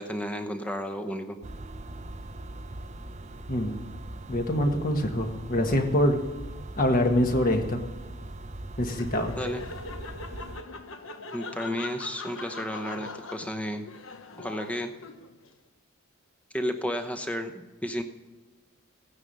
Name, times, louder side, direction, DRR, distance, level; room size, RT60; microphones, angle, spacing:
voice 1, 0.0-1.4 9.4-9.6 11.3-13.9 14.4-14.9 16.5-18.0, equal, 5° left, 7 dB, 0.9 m, -32 dB
sound 1, 1.4-10.6, right 1 dB, 30° right, 0.7 m, -40 dB
voice 2, 3.5-3.8 4.3-6.2 6.8-7.8 8.8-9.4, left 1 dB, 40° left, 4 dB, 1.5 m, -25 dB
Laughter, 9.0-15.5, left 3 dB, 60° left, 1.0 m, -41 dB
16.0 x 9.7 x 5.5 m, 1.2 s
head